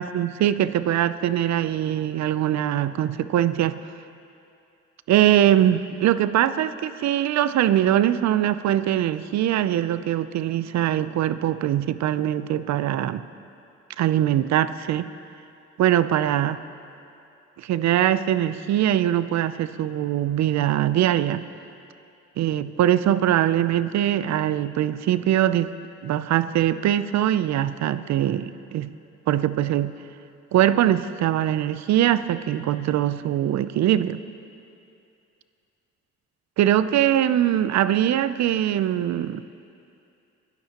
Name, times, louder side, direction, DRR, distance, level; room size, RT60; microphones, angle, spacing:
voice 1, 0.0-3.8 5.1-13.2 14.0-15.1 15.8-16.6 17.6-21.4 22.4-25.7 26.0-28.9 29.3-29.9 30.5-34.2 36.6-39.4, right 11 dB, 65° right, 14 dB, 0.5 m, -22 dB
23.0 x 13.0 x 2.9 m, 2.6 s
cardioid pair, 90°, 30 cm